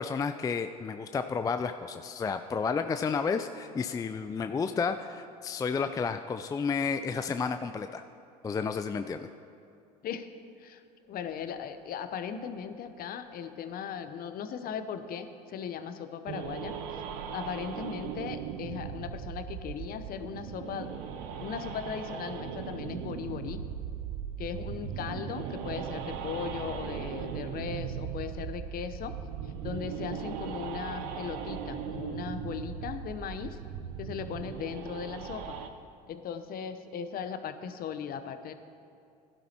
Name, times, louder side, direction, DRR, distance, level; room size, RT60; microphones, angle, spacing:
voice 1, 0.0-8.0 8.4-9.3, left 5 dB, 15° left, 9 dB, 0.4 m, -31 dB
sound 1, 11.0-15.8 16.1-16.2 16.8-21.6, left 3 dB, 85° left, 2.5 m, -57 dB
voice 2, 11.1-17.0 17.3-21.0 21.4-23.6 24.4-29.1 29.4-33.6 34.0-35.6 36.1-38.5, left 7 dB, 45° left, 9 dB, 0.8 m, -38 dB
sound 2, 16.3-35.7, right 8 dB, 65° right, 0.8 m, -38 dB
16.5 x 12.0 x 2.9 m, 2.6 s
hypercardioid pair, 70°, 21 cm